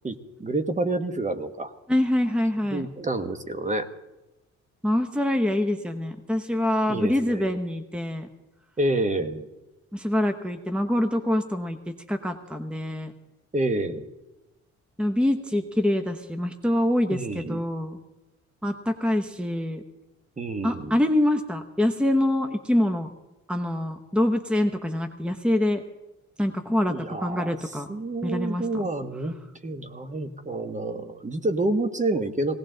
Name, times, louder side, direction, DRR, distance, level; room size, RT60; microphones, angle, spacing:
voice 1, 0.0-1.7 2.7-3.9 6.9-7.6 8.8-9.5 13.5-14.1 17.1-17.6 20.4-21.0 26.9-27.6 27.9-29.3 29.6-32.6, right 2 dB, 25° right, 9 dB, 1.2 m, -28 dB
voice 2, 1.9-2.9 4.8-8.3 9.9-11.8 12.1-13.1 15.0-18.0 18.6-19.8 20.6-23.1 23.5-25.8 26.4-27.9 28.2-28.6, left 1 dB, 5° right, 8 dB, 0.9 m, -25 dB
18.0 x 17.5 x 3.9 m, 1.0 s
cardioid pair, 90°, 30 cm